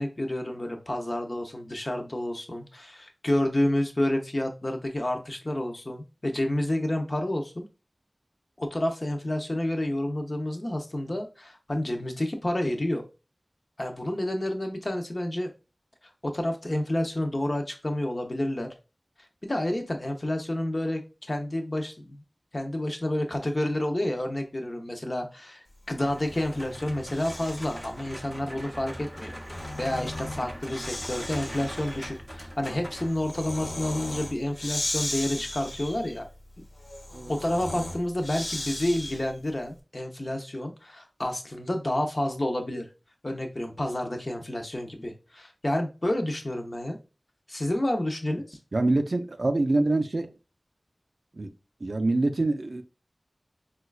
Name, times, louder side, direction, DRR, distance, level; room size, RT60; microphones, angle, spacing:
voice 1, 0.0-7.7 8.6-13.0 13.8-15.5 16.2-18.7 19.4-21.0 21.3-22.2 22.5-36.3 37.3-42.8 43.2-47.0 47.5-48.6, left 1 dB, 45° left, 0.6 m, -29 dB
Breathing, 26.0-27.9 29.2-39.4, left 1 dB, 85° left, 0.7 m, -37 dB
sound 1, 26.0-33.6, equal, ahead, 0.5 m, -41 dB
voice 2, 48.7-50.3 51.3-51.5 51.8-52.8, right 2 dB, 70° right, 0.3 m, -25 dB
4.2 x 2.3 x 2.3 m
wide cardioid pair, 55°, 0 cm